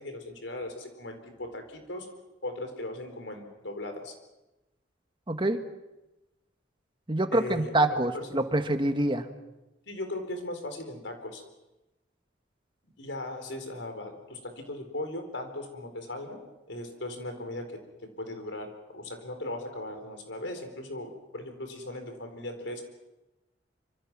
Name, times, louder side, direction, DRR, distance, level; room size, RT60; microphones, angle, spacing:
voice 1, 0.0-2.1 2.4-4.1 7.3-7.7 8.1-8.4 9.9-11.4 13.0-17.8 18.2-22.9, left 1 dB, 85° left, 6 dB, 4.3 m, -38 dB
voice 2, 5.3-5.6 7.1-9.3, right 1 dB, 25° right, 8 dB, 1.4 m, -26 dB
25.5 x 25.5 x 6.1 m, 0.99 s
head